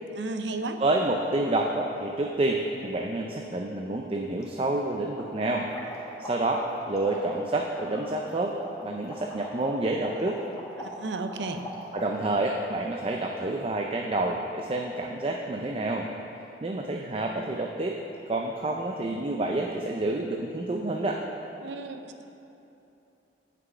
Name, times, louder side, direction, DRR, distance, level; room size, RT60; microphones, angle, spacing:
voice 1, 0.2-0.8 10.8-11.6 21.6-22.3, right 3 dB, 80° right, 7 dB, 0.7 m, -33 dB
voice 2, 0.8-5.7 6.2-8.5 8.8-10.4 11.9-16.1 16.6-18.0 18.3-21.2, right 2 dB, 30° right, 1 dB, 0.5 m, -28 dB
sound 1, 4.4-4.5 4.8-4.9 5.2-12.4, left 1 dB, 20° left, 1.3 m, -41 dB
7.9 x 6.0 x 7.8 m, 2.9 s
head